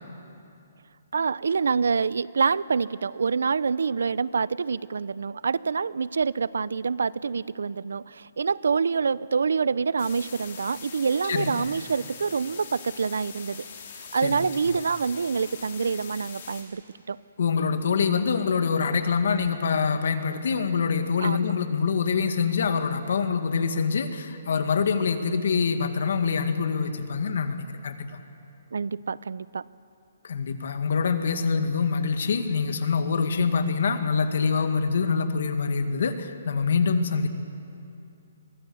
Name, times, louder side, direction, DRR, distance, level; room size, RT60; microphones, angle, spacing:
voice 1, 1.1-13.6 14.1-16.8 17.1-17.2 21.2-21.5 28.7-29.6, right 5 dB, 85° right, 20 dB, 0.6 m, -26 dB
sound 1, 10.0-16.6, left 7 dB, 40° left, 3.6 m, -43 dB
voice 2, 11.3-11.7 14.2-14.4 17.4-28.2 30.2-37.3, left 5 dB, 60° left, 8 dB, 1.9 m, -25 dB
23.5 x 23.5 x 7.1 m, 2.6 s
hypercardioid pair, 170°, 0 cm